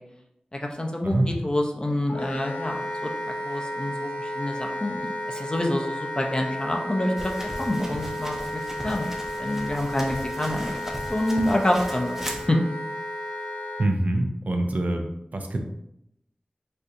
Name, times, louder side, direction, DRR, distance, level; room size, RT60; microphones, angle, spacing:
voice 1, 0.5-3.1 3.4-7.3 7.6-9.1 9.4-10.8 11.1-12.2 12.5-12.6, left 1 dB, 30° left, 2 dB, 0.5 m, -27 dB
voice 2, 1.0-1.4 13.8-15.1 15.3-15.6, right 1 dB, 70° right, 4 dB, 0.5 m, -25 dB
Wind instrument woodwind instrument, 2.1-13.9, left 1 dB, 70° left, 0.7 m, -33 dB
sound 1, 7.2-12.5, equal, 15° right, 0.6 m, -37 dB
4.2 x 2.5 x 2.5 m, 0.79 s
wide cardioid pair, 55°, 3 cm